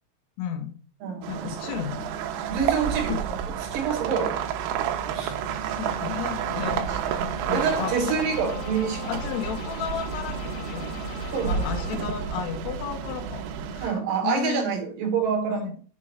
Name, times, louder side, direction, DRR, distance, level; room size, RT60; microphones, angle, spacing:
voice 1, 0.4-0.8 1.3-2.1 3.1-3.2 5.8-8.2 9.1-10.9 11.4-13.4 13.7-14.0 14.2-14.8 15.5-15.7, left 9 dB, 70° left, 2.9 m, -33 dB
voice 2, 1.0-1.7 2.5-3.2 3.6-4.4 5.1-5.4 7.5-9.1 11.3-11.8 13.8-15.7, right 6 dB, 70° right, 2.2 m, -27 dB
sound 1, 1.2-13.9, right 7 dB, 85° right, 2.3 m, -30 dB
sound 2, 5.1-11.2, right 1 dB, 45° right, 2.7 m, -43 dB
sound 3, 7.6-12.0, left 7 dB, 85° left, 1.9 m, -41 dB
6.9 x 4.6 x 6.6 m
omnidirectional pair, 5.7 m